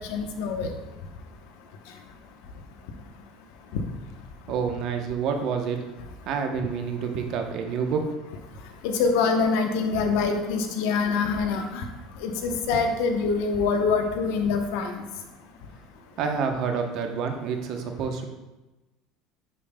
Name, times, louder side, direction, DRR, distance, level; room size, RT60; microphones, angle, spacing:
voice 1, 0.1-0.7 8.8-11.8 12.2-15.0, left 4 dB, 70° left, 5 dB, 0.8 m, -25 dB
voice 2, 4.5-5.8 6.3-8.1 16.2-18.3, right 6 dB, 60° right, 5 dB, 0.9 m, -28 dB
9.9 x 5.1 x 2.2 m, 1.1 s
hypercardioid pair, 80°, 0 cm